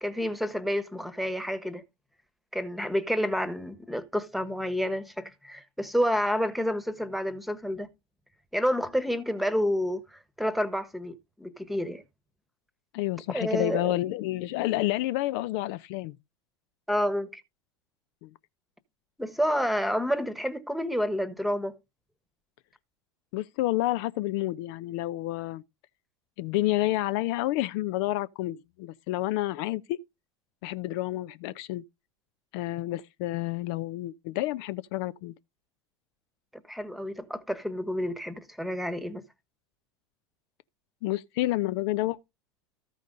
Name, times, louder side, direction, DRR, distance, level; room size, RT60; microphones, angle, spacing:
voice 1, 0.0-1.8 2.5-7.9 8.5-12.0 13.3-14.0 16.9-17.4 19.2-21.8 36.7-39.2, equal, ahead, 1.3 m, -29 dB
voice 2, 12.9-16.2 18.2-18.3 23.3-25.6 26.4-30.0 30.6-31.8 32.5-35.3 41.0-42.2, left 16 dB, 55° left, 0.6 m, -29 dB
14.0 x 5.1 x 3.8 m
hypercardioid pair, 85°, 15 cm